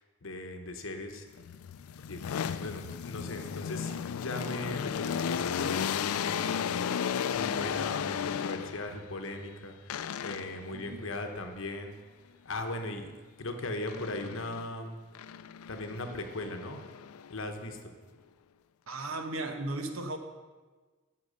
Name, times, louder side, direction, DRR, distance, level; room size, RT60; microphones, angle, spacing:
voice 1, 0.2-1.3 2.0-2.2 2.6-6.8 7.3-11.9 12.4-13.1 13.4-15.0 15.7-16.8 17.3-17.9, left 2 dB, 60° left, 5 dB, 1.1 m, -38 dB
sound 1, 1.4-9.0 9.9-10.7 13.9-14.7 15.1-17.5, left 8 dB, 85° left, 0.4 m, -34 dB
voice 2, 10.7-11.0 18.9-20.2, right 2 dB, 75° right, 6 dB, 1.0 m, -36 dB
10.5 x 5.9 x 6.5 m, 1.4 s
head